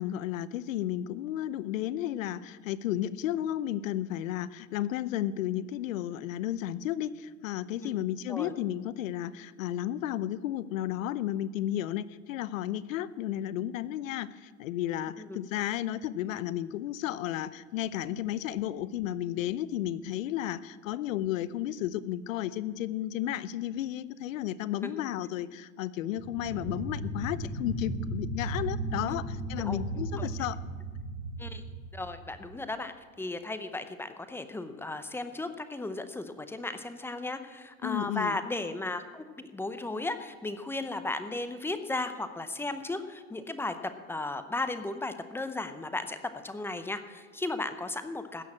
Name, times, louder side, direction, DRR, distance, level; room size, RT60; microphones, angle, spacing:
voice 1, 0.0-30.6 37.8-38.4, left 12 dB, 80° left, 18 dB, 0.7 m, -33 dB
sound 1, 26.2-32.6, right 2 dB, 45° right, 4.2 m, -36 dB
voice 2, 31.9-48.4, left 2 dB, 5° left, 10 dB, 0.6 m, -35 dB
16.0 x 6.4 x 8.7 m, 1.5 s
supercardioid pair, 125°, 39 cm